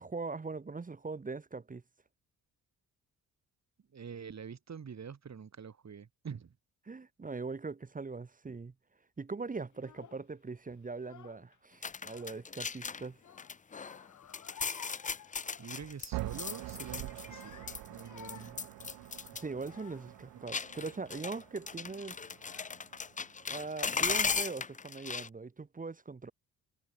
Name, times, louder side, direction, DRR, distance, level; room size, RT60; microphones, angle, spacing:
voice 1, 0.0-1.8 6.9-8.7 9.2-13.2 19.3-22.2 23.5-26.3, right 4 dB, 25° right, 1.1 m, -41 dB
voice 2, 3.9-6.6 15.6-17.6 17.9-18.6, right 6 dB, 50° right, 6.3 m, -46 dB
Child speech kid speaking / Crying sobbing, 9.7-10.3 10.9-11.6 11.9-12.7 13.2-16.0 16.3-16.6 17.1-20.2 20.9-21.2 22.0-22.1 22.4-23.1, left 9 dB, 55° left, 1.7 m, -56 dB
sound 1, 11.8-13.1 13.4-14.0 14.3-17.4 17.7-19.4 19.7-19.8 20.5-25.3, left 5 dB, 20° left, 0.6 m, -37 dB
sound 2, 16.1-24.1, right 19 dB, 90° right, 1.7 m, -46 dB
supercardioid pair, 65°, 35 cm